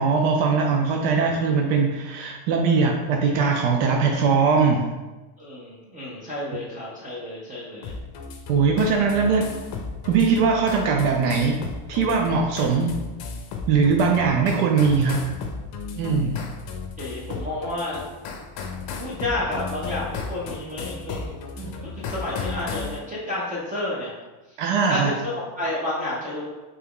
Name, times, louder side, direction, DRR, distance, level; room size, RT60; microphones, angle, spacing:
voice 1, 0.0-4.9 8.5-9.5 10.0-11.6 11.9-12.9 13.7-15.3 16.0-16.4 21.6-21.7 24.6-25.1, right 5 dB, 85° right, 1 dB, 0.7 m, -21 dB
voice 2, 5.4-8.0 17.0-18.0 19.0-24.1 24.5-24.6 24.9-26.5, left 1 dB, 20° right, -7 dB, 0.3 m, -31 dB
sound 1, 7.8-23.0, left 4 dB, 50° left, 0.5 m, -35 dB
3.4 x 2.9 x 3.5 m, 1.2 s
cardioid pair, 170°, 49 cm